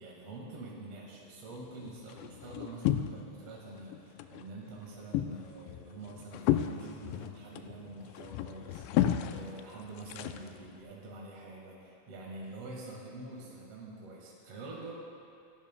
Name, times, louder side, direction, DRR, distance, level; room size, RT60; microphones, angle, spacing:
voice 1, 0.0-14.9, right 2 dB, 55° right, -4 dB, 1.9 m, -46 dB
sound 1, 1.5-3.5 3.8-4.5 4.8-10.8, left 12 dB, 85° left, 2.7 m, -33 dB
27.0 x 12.5 x 2.2 m, 2.5 s
omnidirectional pair, 5.0 m